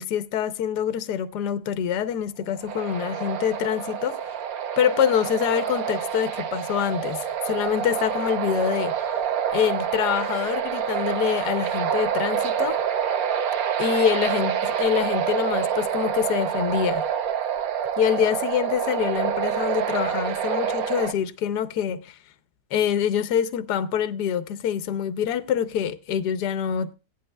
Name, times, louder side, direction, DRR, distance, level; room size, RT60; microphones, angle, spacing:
voice 1, 0.0-4.2 4.8-8.9 9.5-12.8 13.8-17.1 18.0-22.0 22.7-26.9, left 9 dB, 75° left, 1.3 m, -25 dB
sound 1, 2.6-21.1, right 8 dB, 65° right, 1.2 m, -27 dB
16.5 x 11.0 x 2.2 m
omnidirectional pair, 1.8 m